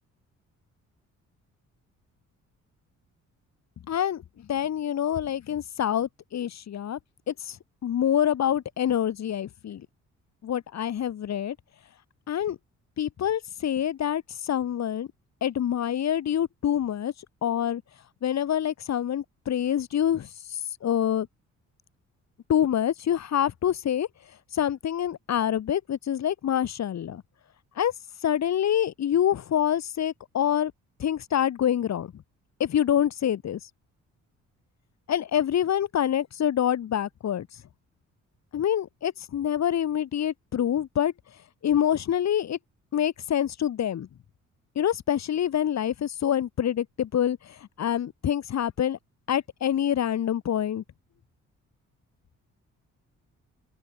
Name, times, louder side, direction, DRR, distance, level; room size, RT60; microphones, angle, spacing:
voice 1, 3.9-4.2 4.5-7.0 7.3-7.6 7.8-9.8 10.4-11.6 12.3-12.6 13.0-15.1 15.4-17.1 17.4-17.8 18.2-20.3 20.8-21.3 22.5-24.1 24.5-27.2 27.8-27.9 28.2-30.7 31.0-32.1 32.6-33.6 35.1-37.5 38.5-41.1 41.6-42.6 42.9-44.1 44.8-47.4 47.8-49.0 49.3-50.8, left 10 dB, 60° left, 3.5 m, -26 dB
open air
cardioid pair, 90°, 30 cm